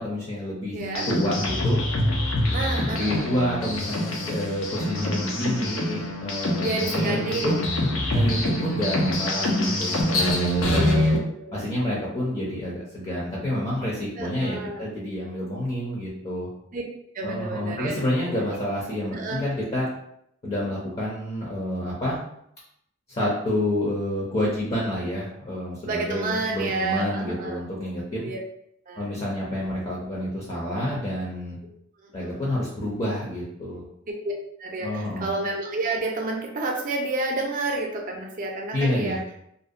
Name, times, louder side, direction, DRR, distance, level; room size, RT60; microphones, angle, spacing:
voice 1, 0.0-0.8 1.1-1.8 2.9-7.6 8.1-11.0 11.5-16.5 17.2-19.9 20.4-22.2 23.1-28.3 29.0-31.6 32.1-33.8 34.8-35.3 38.7-39.2, left 1 dB, 30° left, -5 dB, 0.5 m, -28 dB
voice 2, 0.7-1.1 2.5-3.3 6.6-7.5 10.8-11.7 14.2-14.9 16.7-16.8 17.1-17.9 18.5-18.6 19.1-19.4 25.8-27.6 28.2-28.4 28.9-29.1 32.0-32.4 34.2-34.3 34.6-39.2, right 2 dB, 40° right, 1 dB, 0.5 m, -30 dB
sound 1, 0.8-11.2, left 1 dB, 85° left, 0.5 m, -25 dB
2.5 x 2.1 x 2.5 m, 0.73 s
head